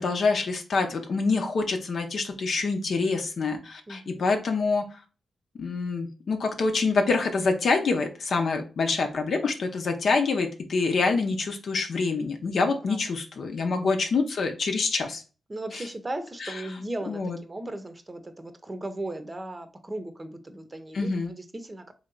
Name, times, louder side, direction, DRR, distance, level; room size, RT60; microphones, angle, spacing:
voice 1, 0.0-4.8 5.6-15.2 15.7-15.8 16.4-16.5 17.1-17.4 20.9-21.3, left 4 dB, 65° left, 0.7 m, -26 dB
voice 2, 3.9-4.3 12.9-13.0 13.6-13.8 15.5-21.9, right 1 dB, 30° right, 0.7 m, -37 dB
3.2 x 2.7 x 3.9 m
supercardioid pair, 40°, 0 cm